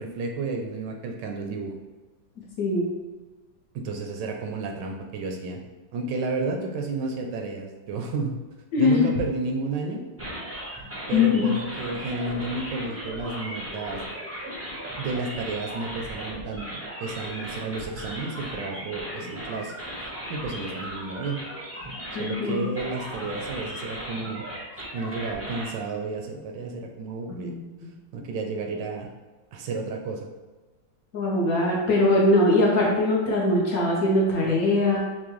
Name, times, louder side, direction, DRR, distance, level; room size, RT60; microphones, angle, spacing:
voice 1, 0.0-1.7 3.7-5.6 5.9-8.3 8.8-10.0 11.1-14.0 15.0-19.7 20.3-21.4 22.2-24.4 24.9-27.5 28.1-29.1 29.5-30.3, right 3 dB, 75° right, 2 dB, 1.1 m, -31 dB
voice 2, 8.7-9.1 11.1-11.5 22.1-22.6 27.3-27.6 31.1-35.0, left 2 dB, 60° left, -4 dB, 1.1 m, -21 dB
sound 1, 10.2-25.7, equal, 15° right, 0.5 m, -37 dB
6.0 x 2.2 x 3.1 m, 1.2 s
omnidirectional pair, 2.1 m